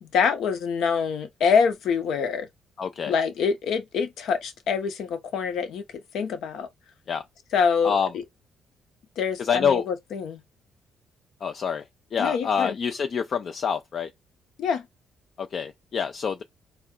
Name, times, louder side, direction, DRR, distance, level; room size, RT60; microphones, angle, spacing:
voice 1, 0.0-2.5 3.1-5.8 6.1-6.7 7.5-8.2 9.2-10.4 12.2-12.8 14.6-14.8, left 6 dB, 75° left, 0.8 m, -25 dB
voice 2, 2.8-3.1 7.1-7.2 7.8-8.1 9.4-9.9 11.4-11.8 12.1-14.1 15.4-16.4, left 7 dB, 55° left, 0.4 m, -26 dB
4.2 x 2.2 x 3.6 m
cardioid pair, 90°, 0 cm